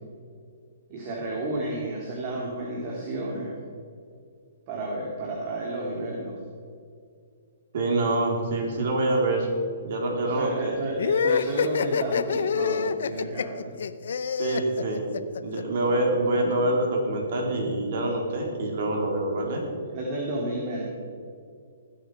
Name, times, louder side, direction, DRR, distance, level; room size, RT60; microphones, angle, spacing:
voice 1, 0.9-3.6 4.7-6.4 10.2-13.7 19.9-20.8, right 1 dB, 35° right, -2 dB, 2.8 m, -31 dB
voice 2, 7.7-9.5 9.8-10.8 14.4-15.1 15.4-19.6, right 2 dB, 55° right, 0 dB, 3.6 m, -26 dB
sound 1, 11.0-15.6, left 6 dB, 70° left, 0.6 m, -26 dB
19.0 x 8.1 x 4.9 m, 2.3 s
hypercardioid pair, 145°, 0 cm